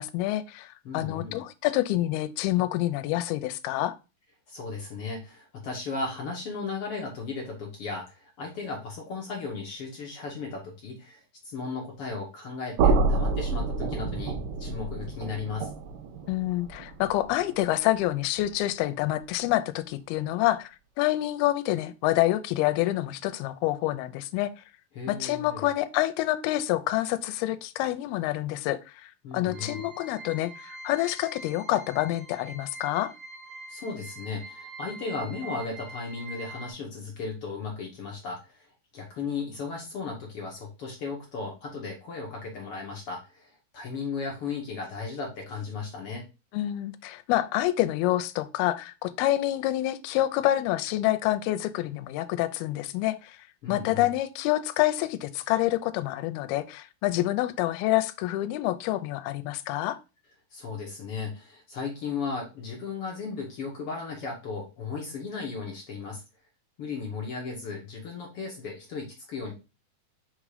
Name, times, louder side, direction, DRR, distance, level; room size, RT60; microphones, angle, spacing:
voice 1, 0.0-4.0 16.3-20.7 21.0-24.5 25.1-33.1 46.5-53.4 53.7-60.0, left 15 dB, 85° left, 2.5 m, -27 dB
voice 2, 0.8-1.4 4.5-15.7 24.9-25.7 29.2-29.9 33.7-38.7 38.9-46.2 53.6-54.1 60.5-66.2 66.8-69.5, left 4 dB, 65° left, 1.4 m, -36 dB
sound 1, 12.8-18.7, right 4 dB, 80° right, 1.9 m, -29 dB
sound 2, 29.5-36.7, right 2 dB, 55° right, 1.3 m, -44 dB
5.7 x 3.7 x 4.9 m
omnidirectional pair, 4.6 m